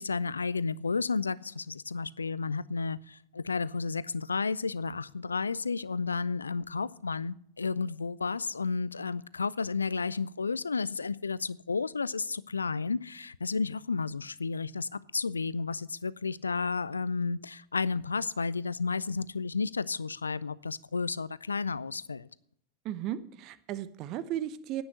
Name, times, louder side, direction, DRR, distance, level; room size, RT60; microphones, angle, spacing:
voice 1, 0.0-22.3, left 4 dB, 75° left, 0.4 m, -32 dB
voice 2, 22.8-24.8, right 11 dB, 40° right, 0.8 m, -35 dB
10.5 x 9.2 x 6.6 m
figure-of-eight pair, 90°, 0 cm